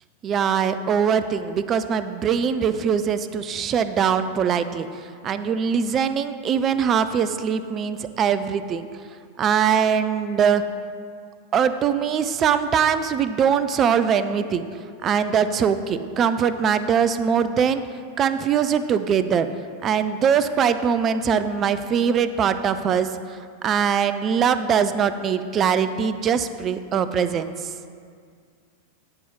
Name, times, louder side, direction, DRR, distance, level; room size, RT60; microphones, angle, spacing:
voice 1, 0.2-8.9 9.4-10.6 11.5-14.6 15.0-17.9 18.2-19.5 19.8-23.4 23.6-27.7, right 7 dB, 30° right, 12 dB, 0.4 m, -22 dB
9.6 x 4.6 x 5.4 m, 2.2 s
figure-of-eight pair, 90°, 0 cm